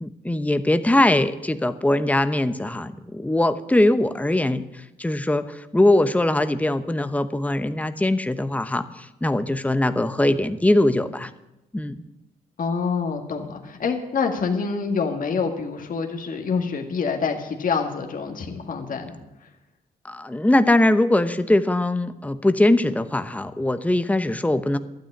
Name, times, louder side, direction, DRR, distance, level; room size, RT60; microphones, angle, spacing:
voice 1, 0.0-11.3 11.7-12.0 20.0-24.8, left 1 dB, 10° left, 11 dB, 0.9 m, -21 dB
voice 2, 12.6-19.2, left 5 dB, 60° left, 3 dB, 1.8 m, -26 dB
12.5 x 9.2 x 8.6 m, 0.91 s
supercardioid pair, 50°, 16 cm